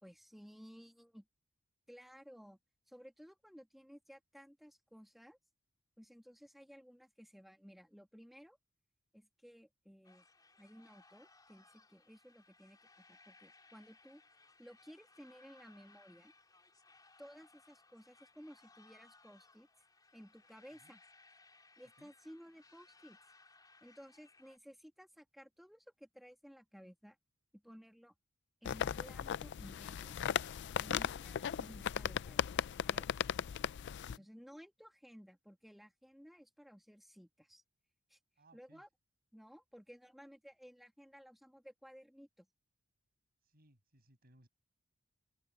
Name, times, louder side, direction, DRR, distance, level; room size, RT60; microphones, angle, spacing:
voice 1, 0.0-1.3 1.9-2.6 2.9-5.4 6.0-8.6 9.1-10.2 10.6-14.2 14.6-16.3 17.2-19.7 20.1-21.0 21.8-23.2 23.8-27.2 27.5-28.1 28.6-30.2 30.8-33.1 34.1-37.6 38.1-38.2 38.5-38.9 39.3-42.5, equal, ahead, 2.3 m, -57 dB
sound 1, 10.0-24.6, left 3 dB, 20° left, 3.7 m, -65 dB
sound 2, 28.7-34.2, left 8 dB, 55° left, 0.4 m, -37 dB
voice 2, 38.4-38.8 43.4-44.5, right 1 dB, 50° right, 6.4 m, -66 dB
open air
head